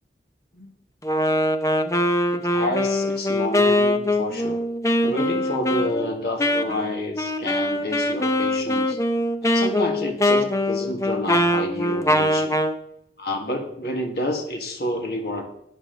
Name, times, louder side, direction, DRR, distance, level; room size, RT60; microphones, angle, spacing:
Wind instrument woodwind instrument, 1.0-12.8, left 1 dB, 20° left, 0.7 m, -22 dB
voice 1, 2.3-4.7 5.0-9.0 9.4-12.6 13.2-15.5, left 1 dB, 65° left, 2 dB, 1.8 m, -29 dB
11.5 x 9.7 x 3.9 m, 0.75 s
head